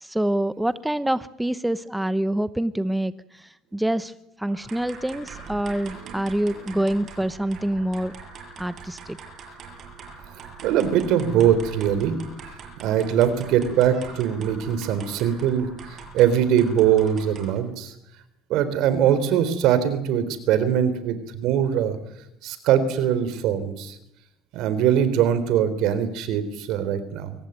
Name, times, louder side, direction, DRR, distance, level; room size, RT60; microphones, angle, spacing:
voice 1, 0.0-3.4 3.7-4.1 4.4-8.1 8.6-9.0, right 1 dB, 5° right, 14 dB, 0.8 m, -26 dB
sound 1, 4.5-17.7, right 5 dB, 45° right, 6.8 m, -42 dB
voice 2, 10.6-15.7 16.1-17.9 18.5-22.0 22.4-24.0 24.5-27.3, right 9 dB, 70° right, 13 dB, 3.7 m, -22 dB
24.0 x 18.0 x 9.1 m, 0.80 s
cardioid pair, 115°, 0 cm